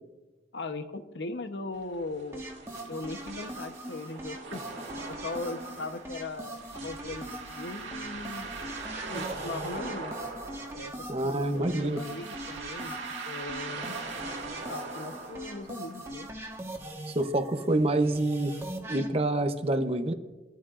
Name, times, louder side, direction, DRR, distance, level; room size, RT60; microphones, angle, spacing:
voice 1, 0.5-2.4 2.9-4.6 5.1-8.5 9.1-10.1 10.7-10.9 11.5-13.0 13.3-14.0 14.7-16.3, left 3 dB, 70° left, 8 dB, 1.0 m, -39 dB
sound 1, 1.8-16.1, right 3 dB, 85° right, 2.0 m, -41 dB
sound 2, 2.3-19.1, right 1 dB, 15° right, 1.5 m, -41 dB
voice 2, 11.1-12.0 17.1-18.6 18.9-20.1, right 1 dB, 35° right, 7 dB, 0.7 m, -27 dB
22.5 x 13.5 x 2.5 m, 1.2 s
head